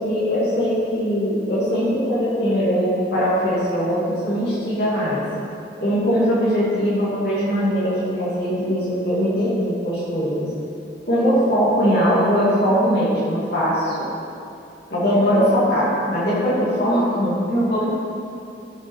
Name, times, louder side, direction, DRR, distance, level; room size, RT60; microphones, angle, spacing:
voice 1, 0.0-5.2 5.8-10.5 11.1-14.1 14.9-17.9, equal, 60° left, -9 dB, 2.6 m, -20 dB
14.5 x 6.3 x 4.6 m, 2.7 s
head